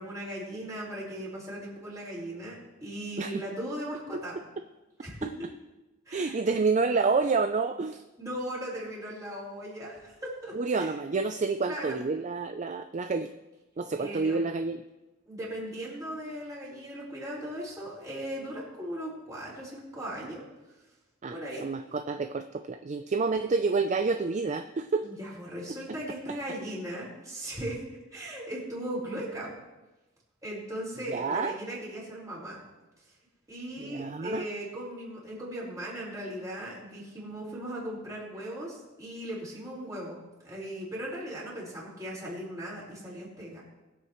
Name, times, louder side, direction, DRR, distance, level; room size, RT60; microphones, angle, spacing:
voice 1, 0.0-4.4 5.0-5.3 6.1-6.3 8.2-10.9 11.7-12.0 14.0-14.5 15.3-20.4 21.3-21.7 25.0-27.8 28.1-29.5 30.4-32.6 33.5-40.2 40.4-43.6, right 1 dB, 15° right, -6 dB, 4.7 m, -38 dB
voice 2, 6.1-8.0 10.5-13.3 13.8-14.8 21.2-25.1 25.7-25.8 31.1-31.6 33.8-34.5, right 4 dB, 35° right, 9 dB, 0.4 m, -29 dB
22.5 x 8.0 x 3.1 m, 1.1 s
head